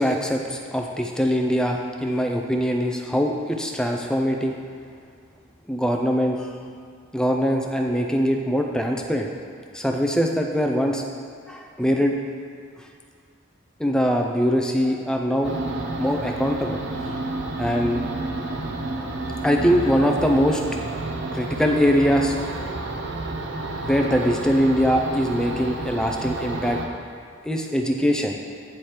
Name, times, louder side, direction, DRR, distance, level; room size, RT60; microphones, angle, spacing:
voice 1, 0.0-4.6 5.7-6.5 7.1-9.3 9.7-11.1 11.5-12.1 13.8-15.5 16.0-16.8 17.6-18.0 19.4-20.6 21.3-22.3 23.8-26.8 27.4-28.4, equal, 5° left, 2 dB, 0.4 m, -22 dB
sound 1, 15.4-26.9, right 2 dB, 60° right, 0.5 m, -30 dB
9.3 x 3.2 x 4.3 m, 2.2 s
head